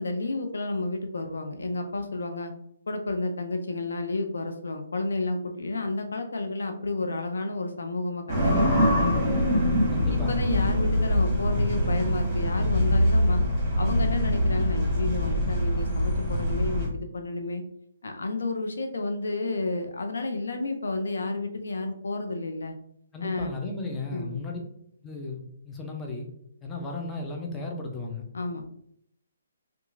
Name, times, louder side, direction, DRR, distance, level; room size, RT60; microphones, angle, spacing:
voice 1, 0.0-2.5 2.9-9.6 10.1-13.4 13.8-17.6 18.0-22.7 23.2-23.5 24.1-24.4 28.3-28.6, left 2 dB, 80° left, 6 dB, 0.4 m, -31 dB
sound 1, 8.3-16.9, equal, 20° right, 1.0 m, -24 dB
voice 2, 9.9-10.6 23.1-24.6 25.0-26.3 26.6-28.3, left 3 dB, 15° left, 1 dB, 0.5 m, -35 dB
2.8 x 2.3 x 2.4 m, 0.71 s
hypercardioid pair, 145°, 0 cm